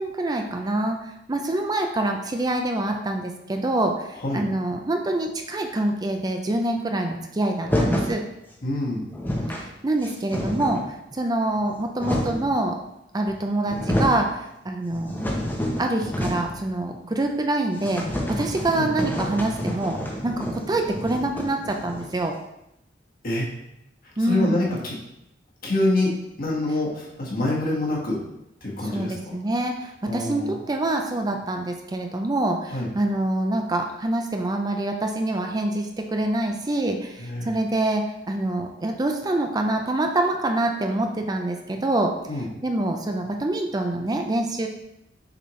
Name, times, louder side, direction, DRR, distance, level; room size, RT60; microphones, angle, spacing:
voice 1, 0.0-8.2 9.5-12.8 13.1-15.2 15.8-22.3 24.2-24.8 28.8-42.1 42.6-44.7, right 2 dB, 20° right, 3 dB, 0.4 m, -26 dB
sound 1, 7.6-8.2 8.8-8.9 9.1-9.7 10.0-10.9 11.6-12.5 13.3-13.4 13.6-14.2 14.7-16.6 16.9-17.0 17.3-17.4 17.8-22.3, equal, 10° left, 0.8 m, -28 dB
voice 2, 8.6-9.0 18.8-18.9 23.2-23.5 24.2-24.9 25.6-26.1 26.4-28.2 28.6-29.3 30.1-30.6 32.7-32.9 37.2-37.5 42.3-42.5, left 1 dB, 50° left, -3 dB, 1.5 m, -26 dB
6.8 x 4.3 x 3.1 m, 0.83 s
head